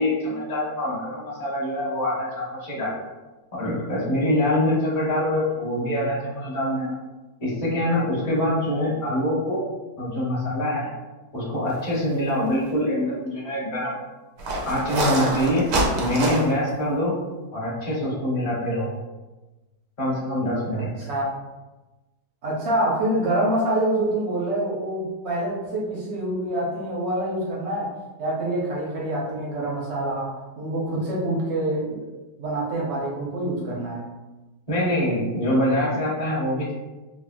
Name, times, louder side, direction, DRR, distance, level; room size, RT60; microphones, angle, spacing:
voice 1, 0.0-2.9 3.5-7.0 7.4-9.7 10.0-10.9 11.3-13.9 14.6-17.1 17.5-18.9 20.0-20.9 34.7-36.7, left 1 dB, 25° left, -8 dB, 0.8 m, -24 dB
sound 1, 12.1-12.3 12.7-12.8 14.4-16.7, right 1 dB, 85° right, 1.2 m, -25 dB
voice 2, 20.7-21.2 22.4-32.0 32.4-34.1, right 1 dB, 60° right, -5 dB, 0.7 m, -26 dB
3.5 x 2.0 x 2.5 m, 1.1 s
omnidirectional pair, 1.8 m